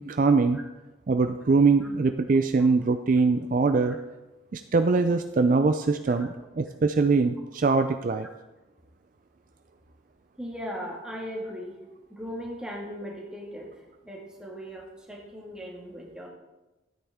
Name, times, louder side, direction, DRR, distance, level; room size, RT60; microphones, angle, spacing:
voice 1, 0.1-0.6 1.1-4.0 4.5-6.3 6.6-8.3, right 4 dB, 45° right, 8 dB, 0.4 m, -22 dB
voice 2, 10.4-11.8 12.1-16.3, equal, 5° right, -2 dB, 1.8 m, -38 dB
13.0 x 8.8 x 3.6 m, 1.1 s
head